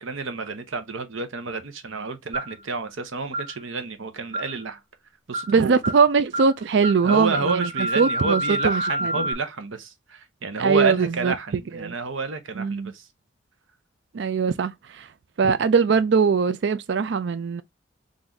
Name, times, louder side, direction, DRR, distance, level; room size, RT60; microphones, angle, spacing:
voice 1, 0.0-4.8 5.3-5.8 7.0-13.0 15.4-15.5, right 4 dB, 75° right, 0.9 m, -30 dB
sound 1, 2.3-2.6 3.3-3.5 4.3-4.6 5.3-5.5 5.8-6.0 6.3-6.5 6.8-9.3, right 1 dB, 30° right, 0.9 m, -28 dB
voice 2, 5.5-9.3 10.6-11.3 11.7-11.9 12.5-12.9 14.1-15.1 15.4-17.6, right 5 dB, 60° right, 0.4 m, -21 dB
3.9 x 2.6 x 4.4 m
head